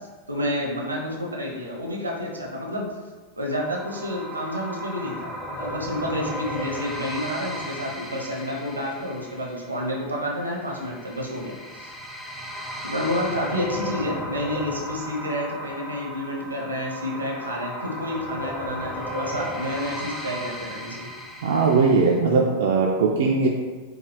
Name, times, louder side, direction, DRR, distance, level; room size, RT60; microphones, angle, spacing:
voice 1, 0.3-2.9 3.4-11.9 12.8-21.1, left 1 dB, 80° right, -1 dB, 0.7 m, -29 dB
sound 1, 3.5-22.2, equal, 5° left, 0.5 m, -35 dB
voice 2, 21.4-23.5, right 4 dB, 60° right, -2 dB, 0.4 m, -19 dB
4.7 x 2.3 x 3.3 m, 1.4 s
figure-of-eight pair, 90°, 0 cm